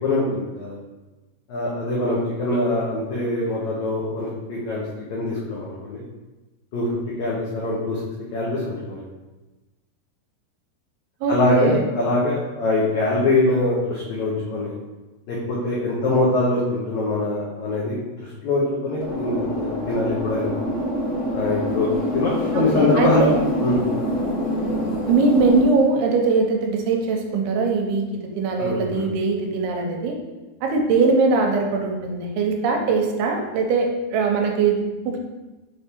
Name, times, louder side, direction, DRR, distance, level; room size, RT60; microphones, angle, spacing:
voice 1, 0.0-0.8 1.5-4.8 5.1-6.0 6.7-6.9 7.2-8.0 8.3-9.0 11.3-14.8 15.3-20.7 21.3-23.3 23.6-23.8 28.6-29.0, left 2 dB, 80° left, -6 dB, 1.6 m, -23 dB
voice 2, 11.2-11.8 22.5-23.4 25.1-30.2 30.6-34.8 35.1-35.2, right 4 dB, 90° right, 2 dB, 2.7 m, -21 dB
sound 1, 19.0-25.6, left 1 dB, 50° left, 2.1 m, -25 dB
6.3 x 3.5 x 4.2 m, 1.1 s
omnidirectional pair, 4.6 m